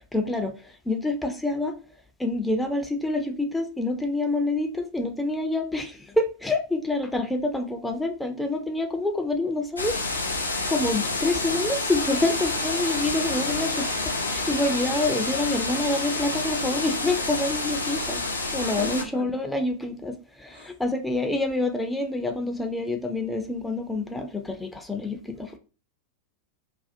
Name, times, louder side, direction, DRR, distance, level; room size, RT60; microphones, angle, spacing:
voice 1, 0.0-1.8 2.2-10.3 10.7-25.6, left 2 dB, 5° left, 0.3 m, -27 dB
sound 1, 9.8-19.0, left 2 dB, 80° left, 0.4 m, -28 dB
voice 2, 18.6-19.3 20.5-20.7, equal, 70° right, 0.9 m, -36 dB
2.4 x 2.0 x 2.5 m
figure-of-eight pair, 90°, 0 cm